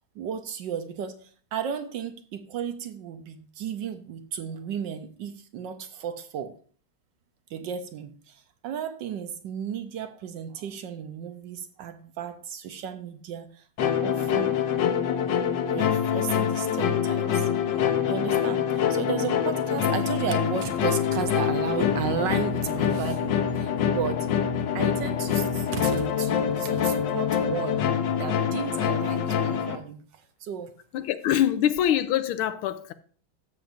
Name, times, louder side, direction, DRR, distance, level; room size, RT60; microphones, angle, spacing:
voice 1, 0.1-6.6 7.5-14.5 15.6-24.3 24.7-27.8 28.2-30.7, right 8 dB, 70° right, 1.3 m, -34 dB
sound 1, 13.8-29.8, left 8 dB, 65° left, 1.4 m, -25 dB
voice 2, 30.9-32.9, left 11 dB, 90° left, 1.5 m, -24 dB
13.0 x 7.3 x 2.6 m
omnidirectional pair, 2.3 m